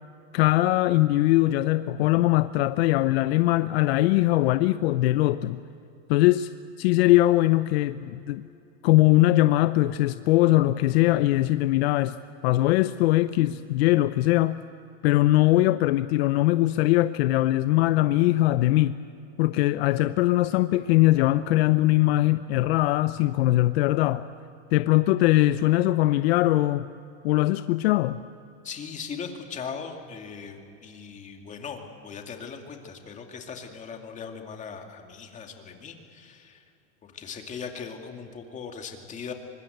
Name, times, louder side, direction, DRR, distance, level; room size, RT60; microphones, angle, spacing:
voice 1, 0.3-5.6 6.1-6.5 6.8-8.5 8.8-12.2 12.4-14.6 15.0-18.9 19.4-24.2 24.7-26.9 27.2-28.2, left 16 dB, 65° left, 13 dB, 0.7 m, -21 dB
voice 2, 28.6-36.6 37.0-39.3, left 6 dB, 20° left, 4 dB, 2.3 m, -39 dB
24.5 x 21.0 x 8.0 m, 2.7 s
supercardioid pair, 150°, 34 cm